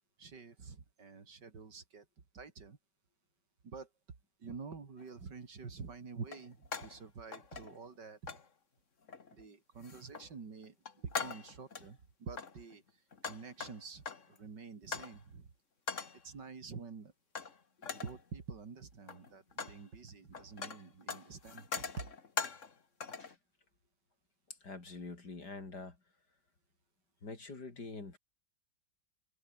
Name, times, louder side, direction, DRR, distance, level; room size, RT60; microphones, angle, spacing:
voice 1, 0.2-2.1 2.3-2.8 3.6-3.9 4.4-8.4 9.3-15.5 16.2-17.1 17.9-21.9, right 5 dB, 65° right, 3.3 m, -48 dB
sound 1, 5.0-5.1 6.3-7.0 7.3-8.0 8.3-8.5 9.1-9.4 9.8-10.3 10.6-11.9 12.3-14.4 14.9-15.2 15.9-16.2 17.3-17.6 17.8-18.2 18.9-19.8 20.1-22.7 23.0-23.3, left 5 dB, 40° left, 2.0 m, -42 dB
voice 2, 24.5-26.0 27.2-28.2, left 3 dB, 60° left, 4.6 m, -46 dB
omnidirectional pair, 2.0 m